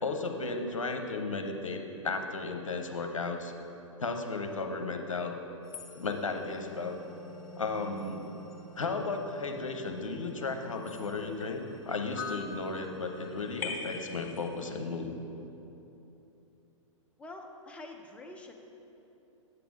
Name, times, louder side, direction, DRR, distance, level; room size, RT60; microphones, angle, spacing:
voice 1, 0.0-3.5 4.0-5.4 6.0-7.0 7.6-8.3 8.8-15.1, left 3 dB, 75° left, 4 dB, 0.8 m, -34 dB
sound 1, 5.6-14.8, left 3 dB, 40° left, 0.9 m, -45 dB
voice 2, 17.2-18.5, left 2 dB, 5° left, 2 dB, 0.5 m, -46 dB
7.9 x 6.9 x 3.7 m, 3.0 s
figure-of-eight pair, 110°, 17 cm